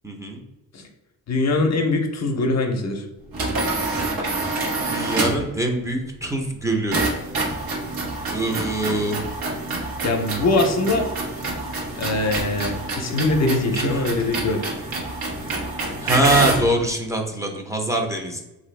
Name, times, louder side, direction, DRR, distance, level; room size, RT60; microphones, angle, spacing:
voice 1, 0.0-0.4 4.8-7.0 8.3-9.2 13.7-14.0 16.0-18.4, right 1 dB, 10° right, 1 dB, 0.5 m, -23 dB
voice 2, 1.3-3.0 10.0-11.1 11.7-14.6, left 2 dB, 50° left, 4 dB, 0.6 m, -22 dB
sound 1, 3.3-5.5 6.9-16.7, right 2 dB, 80° right, 1.2 m, -27 dB
3.3 x 2.6 x 3.2 m, 1.0 s
cardioid pair, 95°, 35 cm